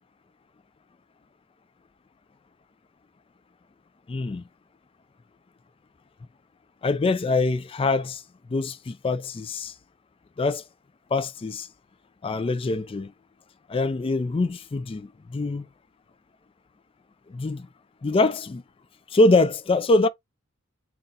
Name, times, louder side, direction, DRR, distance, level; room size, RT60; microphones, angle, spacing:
voice 1, 4.1-4.4 6.8-8.2 8.5-9.7 10.4-10.6 11.1-11.7 12.2-13.1 13.7-15.7 17.3-17.7 18.0-18.6 19.1-20.1, left 2 dB, 25° left, 0.3 m, -24 dB
3.9 x 2.3 x 3.9 m
head